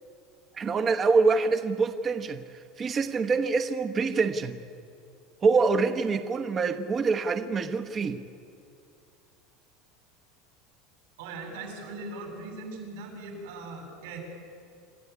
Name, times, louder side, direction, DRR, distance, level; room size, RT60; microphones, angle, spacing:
voice 1, 0.5-2.4 2.8-4.6 5.4-8.2, right 4 dB, 25° right, 7 dB, 1.1 m, -25 dB
voice 2, 11.2-14.2, right 3 dB, 85° right, 1 dB, 7.8 m, -40 dB
26.5 x 14.5 x 9.8 m, 2.4 s
supercardioid pair, 150°, 0 cm